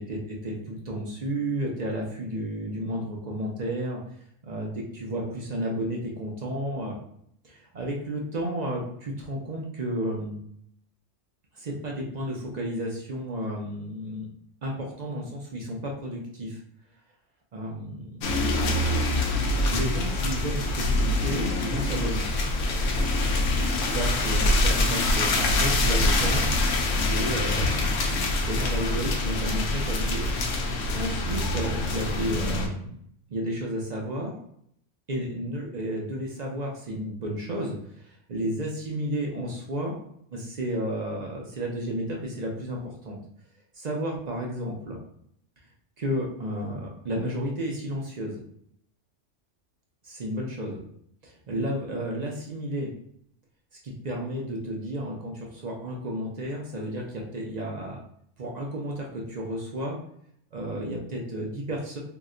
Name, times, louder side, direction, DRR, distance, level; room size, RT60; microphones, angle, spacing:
voice 1, 0.0-4.0 4.4-7.0 7.4-10.4 11.5-14.3 14.6-16.6 17.5-18.2 19.7-22.2 23.9-26.5 26.9-33.0 33.3-34.3 35.1-39.9 40.3-43.2 43.7-45.0 46.0-48.4 50.0-50.8 51.2-52.9 53.8-58.0 58.4-60.0 60.5-62.0, right 1 dB, 50° right, -1 dB, 0.5 m, -32 dB
sound 1, 18.2-32.7, left 2 dB, 80° left, 0.9 m, -25 dB
2.8 x 2.1 x 3.6 m, 0.68 s
omnidirectional pair, 1.3 m